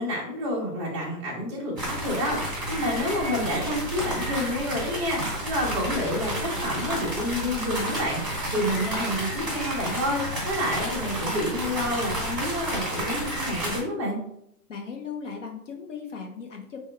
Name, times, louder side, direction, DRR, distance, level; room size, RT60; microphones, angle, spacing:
voice 1, 0.0-14.2, left 1 dB, 20° right, -4 dB, 0.8 m, -29 dB
sound 1, 1.8-13.8, right 1 dB, ahead, 1.5 m, -31 dB
voice 2, 14.7-16.8, left 6 dB, 50° left, 2 dB, 0.6 m, -37 dB
3.5 x 2.1 x 4.3 m, 0.75 s
hypercardioid pair, 170°, 49 cm